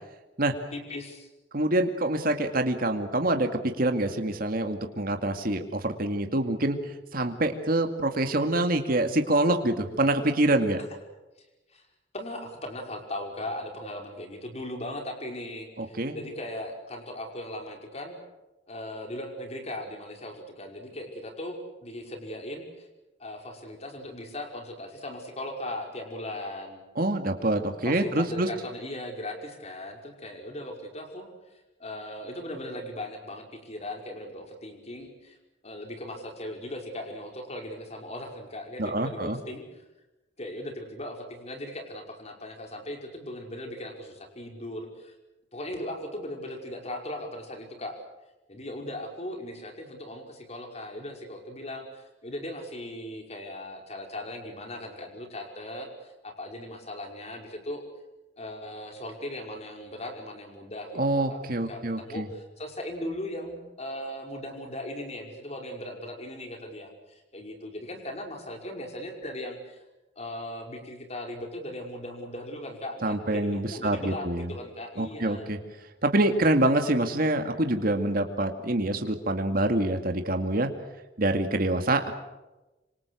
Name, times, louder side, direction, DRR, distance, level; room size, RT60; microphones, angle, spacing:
voice 1, 0.7-1.3 11.7-11.8 12.1-18.2 18.7-22.9 23.2-26.8 27.8-31.3 31.8-35.4 35.6-39.6 40.4-45.1 45.5-48.0 48.5-57.8 58.4-61.4 61.7-69.8 70.2-75.5, left 1 dB, 35° left, 3 dB, 5.4 m, -38 dB
voice 2, 1.5-10.8 15.8-16.2 27.0-28.5 38.8-39.4 60.9-62.3 73.0-74.5 75.0-75.6 76.0-80.7 81.2-82.1, right 1 dB, 55° right, 6 dB, 2.3 m, -26 dB
27.0 x 26.0 x 6.4 m, 1.0 s
head